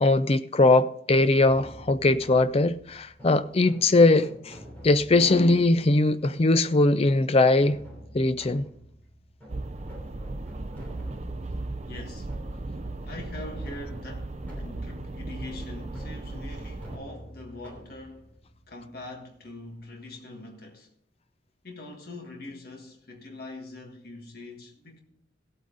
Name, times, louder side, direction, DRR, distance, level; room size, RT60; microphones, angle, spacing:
voice 1, 0.0-4.6 4.8-7.8 8.1-8.7, left 2 dB, 30° left, 0.5 m, -21 dB
sound 1, 1.1-19.8, equal, 10° left, 3.0 m, -48 dB
sound 2, 9.5-17.0, right 2 dB, 35° right, 0.6 m, -36 dB
voice 2, 11.8-12.3 13.0-18.3 18.7-20.9 21.6-25.0, left 2 dB, 50° left, 1.7 m, -43 dB
15.5 x 8.4 x 3.9 m
head